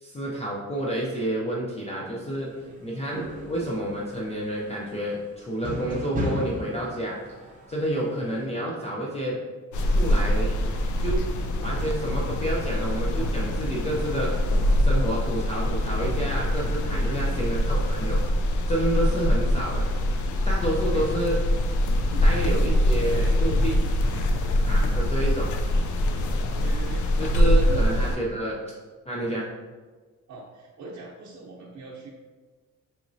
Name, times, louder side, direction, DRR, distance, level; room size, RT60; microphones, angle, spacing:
voice 1, 0.0-2.5 2.8-7.2 7.7-9.4 9.8-10.5 11.0-11.2 11.5-14.3 14.8-18.2 18.7-19.9 20.5-21.4 22.2-23.8 24.6-25.5 27.2-28.6 29.1-29.5, right 1 dB, 20° left, -4 dB, 0.4 m, -29 dB
sound 1, 2.3-2.8 3.1-8.5, equal, 25° right, 0.6 m, -35 dB
sound 2, 9.7-28.2, left 1 dB, 80° left, 0.5 m, -24 dB
voice 2, 16.9-17.6 20.9-21.0 22.0-22.3 26.6-27.8 28.1-28.3 29.2-29.5 30.3-32.1, right 2 dB, 80° right, -3 dB, 0.7 m, -42 dB
4.9 x 3.0 x 2.6 m, 1.4 s
wide cardioid pair, 175°, 30 cm